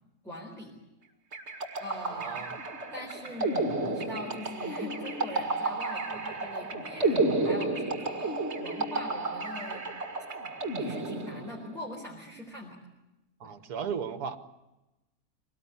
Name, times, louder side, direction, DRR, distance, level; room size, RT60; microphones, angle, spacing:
voice 1, 0.2-0.7 1.8-2.5 2.9-9.9 10.7-12.8 13.4-13.5, left 1 dB, ahead, -3 dB, 4.0 m, -42 dB
sound 1, 1.3-11.8, right 2 dB, 45° right, 2.4 m, -32 dB
voice 2, 2.1-2.6 13.4-14.4, right 6 dB, 70° right, 10 dB, 1.8 m, -35 dB
23.5 x 19.0 x 9.7 m, 1.0 s
omnidirectional pair, 1.7 m